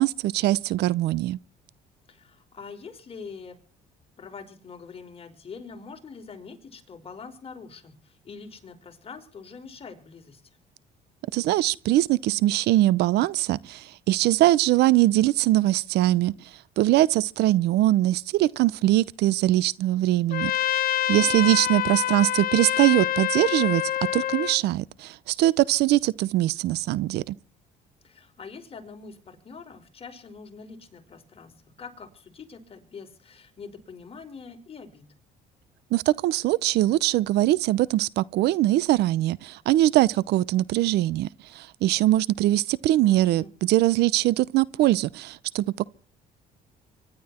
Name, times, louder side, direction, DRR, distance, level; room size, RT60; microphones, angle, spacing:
voice 1, 0.0-1.4 11.3-16.3 16.8-20.5 21.1-23.8 24.1-27.3 35.9-45.9, right 15 dB, 80° right, 0.7 m, -22 dB
voice 2, 2.1-3.6 4.2-10.4 21.1-21.6 28.0-31.5 31.8-35.0 43.0-43.5, left 5 dB, 35° left, 5.2 m, -44 dB
Trumpet, 20.3-24.6, left 12 dB, 60° left, 1.1 m, -26 dB
25.0 x 12.0 x 4.4 m
cardioid pair, 110°, 17 cm